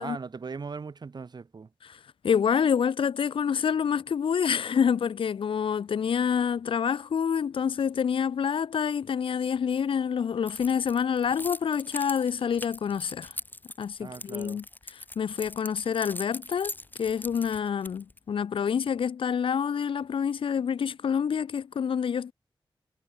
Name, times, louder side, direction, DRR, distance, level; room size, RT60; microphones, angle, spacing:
voice 1, 0.0-1.7 14.0-14.6, right 4 dB, 55° right, 1.4 m, -39 dB
voice 2, 2.2-13.3 13.8-14.6 15.2-16.7 17.0-22.3, left 7 dB, 75° left, 0.5 m, -27 dB
Keys jangling, 10.5-18.2, left 2 dB, 20° left, 2.5 m, -41 dB
wide cardioid pair, 105°, 9 cm